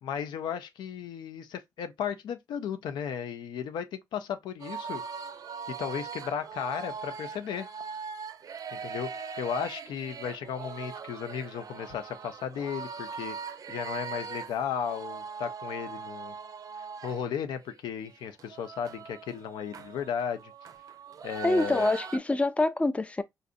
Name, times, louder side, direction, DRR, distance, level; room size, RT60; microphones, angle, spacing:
voice 1, 0.0-5.0 5.7-7.7 8.7-13.4 13.7-16.3 16.8-20.5 21.2-21.9, left 8 dB, 85° left, 0.5 m, -35 dB
sound 1, 4.6-17.2 17.6-17.7 18.1-22.2, right 6 dB, 55° right, 0.5 m, -41 dB
voice 2, 21.4-23.2, left 2 dB, 15° left, 0.4 m, -26 dB
3.9 x 2.5 x 2.4 m
cardioid pair, 75°, 8 cm